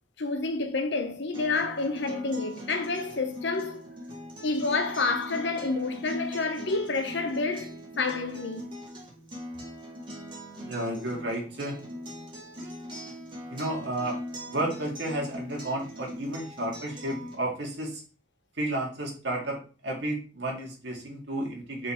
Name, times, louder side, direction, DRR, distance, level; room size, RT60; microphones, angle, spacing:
voice 1, 0.2-3.8 4.4-7.7 8.0-8.7, left 3 dB, 70° left, 0.9 m, -29 dB
Acoustic guitar, 1.3-17.3, equal, 25° right, 1.9 m, -41 dB
voice 2, 10.7-11.8 13.5-14.2 14.5-18.0 18.6-21.9, right 1 dB, 75° right, 2.2 m, -32 dB
5.4 x 4.1 x 4.4 m
head